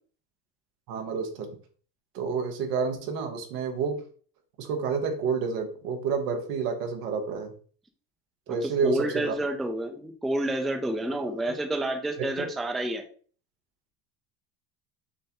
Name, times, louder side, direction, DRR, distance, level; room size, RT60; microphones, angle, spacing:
voice 1, 0.9-1.6 2.1-4.0 4.6-7.5 8.5-9.3 11.5-11.6 12.4-12.5, right 5 dB, 85° right, 4 dB, 1.1 m, -29 dB
voice 2, 8.6-13.0, right 1 dB, ahead, 4 dB, 0.3 m, -29 dB
6.4 x 2.2 x 2.9 m, 0.43 s
supercardioid pair, 90°, 47 cm